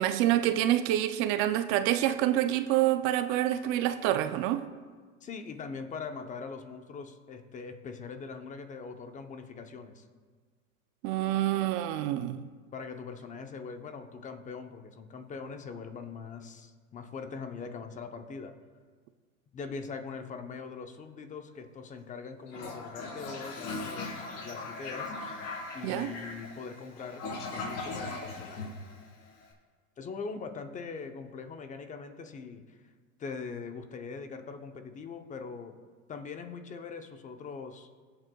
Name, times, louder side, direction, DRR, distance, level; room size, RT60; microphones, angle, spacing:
voice 1, 0.0-4.6 11.0-12.4 25.8-26.1, right 13 dB, 35° right, 0.4 m, -27 dB
voice 2, 5.2-10.0 12.7-18.5 19.5-25.1 25.7-28.8 30.0-32.9 33.2-35.8 36.1-37.9, left 5 dB, 20° left, 0.7 m, -42 dB
Toilet flush, 22.5-29.4, left 3 dB, 50° left, 3.5 m, -39 dB
22.5 x 7.9 x 2.3 m
hypercardioid pair, 120°, 41 cm